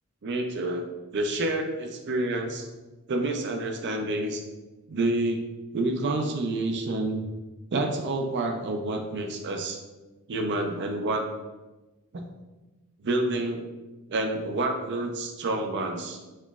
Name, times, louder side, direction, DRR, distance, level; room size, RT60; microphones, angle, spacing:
voice 1, 0.2-0.8 1.1-2.7 3.1-4.4 4.9-5.4 5.7-7.3 7.7-9.8 10.3-11.2 12.1-12.2 13.0-13.7 14.1-16.2, right 2 dB, 50° right, 4 dB, 0.5 m, -28 dB
4.3 x 3.0 x 2.3 m, 1.1 s
head